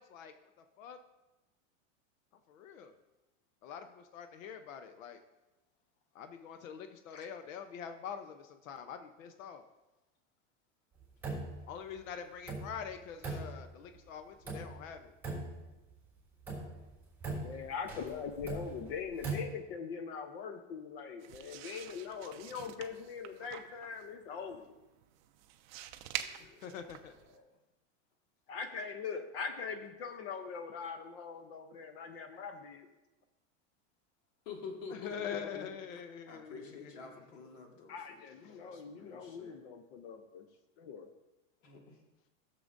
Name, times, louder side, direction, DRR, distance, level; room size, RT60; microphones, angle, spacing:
voice 1, 0.0-0.3 0.8-1.0 2.5-2.9 3.6-5.2 6.2-9.6 11.7-15.1 26.4-27.2 34.9-37.0, left 7 dB, 90° left, 8 dB, 0.8 m, -44 dB
sound 1, 11.0-11.7 12.0-12.1 12.5-14.0 14.5-15.0 15.2-16.0 16.4-19.4, right 3 dB, 5° right, 3.0 m, -40 dB
voice 2, 17.4-24.7 28.5-32.9 37.9-40.5 40.8-41.1, left 6 dB, 50° left, 7 dB, 0.7 m, -42 dB
sound 2, 21.2-27.4, right 12 dB, 40° right, 0.4 m, -47 dB
voice 3, 26.1-27.4 34.5-35.7 36.3-39.6 41.6-42.0, left 5 dB, 70° left, 1 dB, 1.8 m, -49 dB
13.5 x 6.8 x 2.6 m, 1.0 s
supercardioid pair, 160°, 38 cm